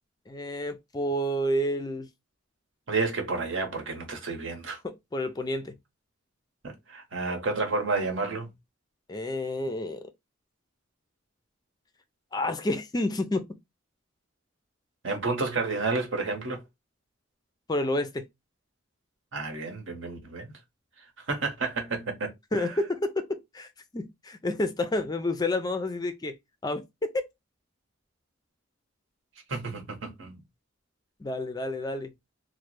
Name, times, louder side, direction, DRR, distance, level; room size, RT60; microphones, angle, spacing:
voice 1, 0.3-2.1 4.8-5.8 9.1-10.0 12.3-13.5 17.7-18.2 22.5-26.4 26.6-27.1 31.2-32.1, left 1 dB, 20° left, 0.3 m, -29 dB
voice 2, 2.9-4.8 6.9-8.5 15.0-16.6 19.3-20.5 21.3-22.3 22.6-22.7 29.5-30.4, right 3 dB, 70° right, 1.0 m, -30 dB
3.0 x 2.1 x 3.1 m
head